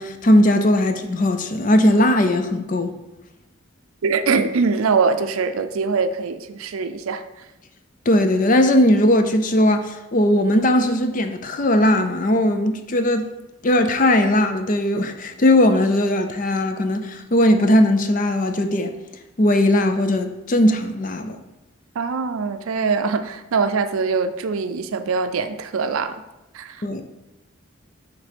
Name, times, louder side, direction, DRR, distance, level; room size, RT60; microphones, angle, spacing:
voice 1, 0.0-2.9 8.1-13.3 13.6-18.9 19.4-21.4 26.8-27.0, left 1 dB, 40° left, 0.5 m, -18 dB
voice 2, 4.0-7.2 22.0-26.2 26.5-26.8, right 4 dB, 85° right, 0.4 m, -23 dB
6.2 x 3.3 x 5.1 m
head